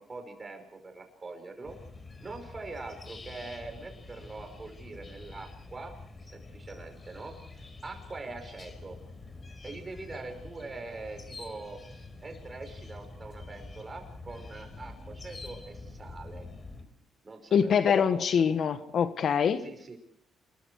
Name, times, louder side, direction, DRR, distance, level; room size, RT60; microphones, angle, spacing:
voice 1, 0.0-1.8 2.2-5.9 6.2-9.0 9.6-16.4 17.2-17.8 18.1-18.5 19.6-20.0, right 3 dB, 30° right, 6 dB, 5.8 m, -43 dB
sound 1, 1.6-16.8, left 3 dB, 30° left, 4.8 m, -46 dB
voice 2, 17.5-19.6, left 7 dB, 60° left, 10 dB, 1.6 m, -24 dB
27.5 x 23.0 x 4.9 m, 0.70 s
cardioid pair, 90°, 0 cm